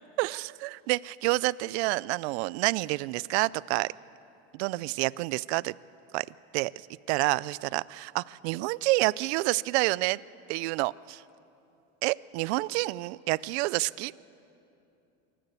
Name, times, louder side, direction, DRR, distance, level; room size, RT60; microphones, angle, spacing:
voice 1, 0.2-3.9 4.5-5.7 6.1-6.3 6.5-10.2 10.5-11.2 12.0-14.3, right 21 dB, 70° right, 22 dB, 0.5 m, -28 dB
24.5 x 14.0 x 8.2 m, 2.8 s
cardioid pair, 170°, 34 cm